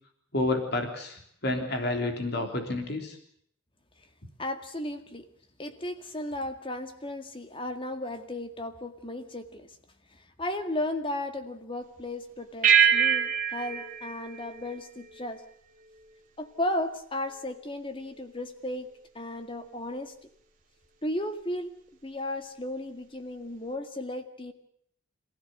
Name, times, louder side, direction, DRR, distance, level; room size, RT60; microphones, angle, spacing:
voice 1, 0.3-3.2, left 2 dB, 55° left, 5 dB, 3.5 m, -30 dB
voice 2, 4.4-5.3 5.6-9.7 10.1-15.4 16.4-18.9 19.1-20.1 21.0-21.7 22.0-24.5, left 1 dB, 25° left, 8 dB, 2.0 m, -35 dB
sound 1, 12.6-15.4, right 8 dB, 40° right, 2.9 m, -25 dB
27.0 x 16.0 x 8.0 m, 0.67 s
head